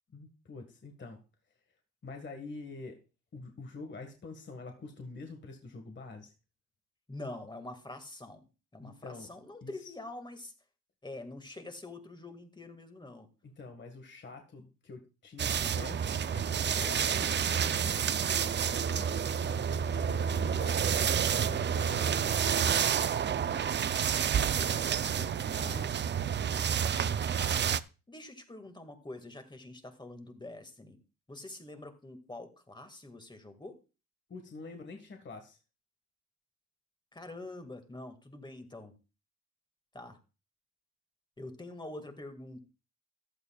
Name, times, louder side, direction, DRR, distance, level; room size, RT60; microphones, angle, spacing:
voice 1, 0.1-1.2 2.0-3.0 3.3-6.3 8.8-9.3 9.6-9.9 13.4-22.2 24.6-25.1 25.3-25.9 34.3-35.6, left 3 dB, 40° left, 4 dB, 1.7 m, -46 dB
voice 2, 7.1-8.5 8.7-10.5 11.0-13.3 24.4-25.9 28.1-31.0 31.3-33.8 37.1-39.0 39.9-40.2 41.4-42.6, left 2 dB, 15° left, 6 dB, 2.0 m, -46 dB
sound 1, 15.4-27.8, right 8 dB, 35° right, 0.5 m, -29 dB
14.5 x 11.0 x 2.4 m, 0.32 s
cardioid pair, 90°, 30 cm